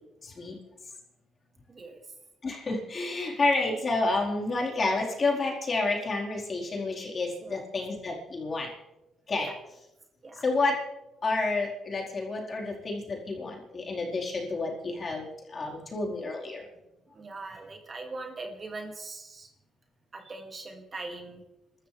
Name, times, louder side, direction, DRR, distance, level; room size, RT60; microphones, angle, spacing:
voice 1, 0.2-0.6 2.4-8.7 9.3-9.5 10.4-10.8 11.2-16.6, left 3 dB, 40° left, -2 dB, 4.5 m, -29 dB
voice 2, 1.7-2.0 7.4-7.6 9.4-9.5 10.2-10.4 15.7-15.9 17.1-19.5 20.1-21.4, right 3 dB, 40° right, 3 dB, 2.4 m, -41 dB
28.5 x 13.0 x 3.4 m, 0.93 s
cardioid pair, 90°, 0 cm